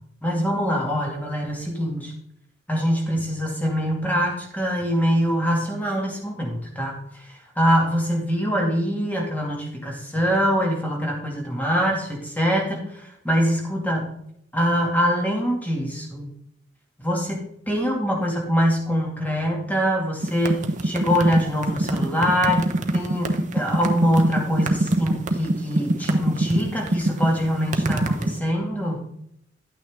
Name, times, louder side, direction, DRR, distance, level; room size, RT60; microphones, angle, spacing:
voice 1, 0.2-2.1 2.7-7.0 7.6-14.2 14.5-16.3 17.0-17.4 17.7-29.1, equal, 10° left, -1 dB, 2.2 m, -24 dB
sound 1, 20.2-28.4, right 1 dB, 40° right, 0.9 m, -24 dB
11.5 x 9.0 x 3.6 m, 0.72 s
head